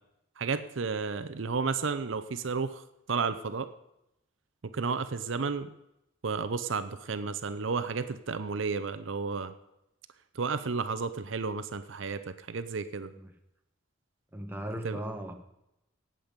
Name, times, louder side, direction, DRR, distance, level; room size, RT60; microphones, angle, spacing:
voice 1, 0.4-3.7 4.6-5.7 6.2-9.5 10.4-12.2 12.5-13.1 14.8-15.0, right 4 dB, 65° right, 11 dB, 0.6 m, -32 dB
voice 2, 14.3-15.3, right 1 dB, 10° right, 4 dB, 1.3 m, -37 dB
18.5 x 7.6 x 5.2 m, 0.86 s
head